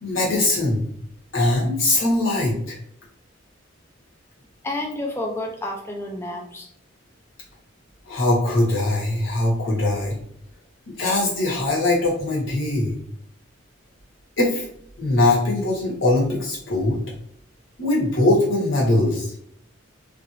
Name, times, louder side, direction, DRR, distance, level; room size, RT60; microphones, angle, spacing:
voice 1, 0.0-0.8 1.3-2.8 8.1-10.2 10.9-13.0 14.4-14.7 15.0-17.0 17.8-19.3, left 2 dB, 85° left, -3 dB, 1.2 m, -21 dB
voice 2, 4.6-6.7, left 1 dB, 15° left, 1 dB, 0.3 m, -30 dB
3.1 x 2.7 x 2.5 m, 0.67 s
head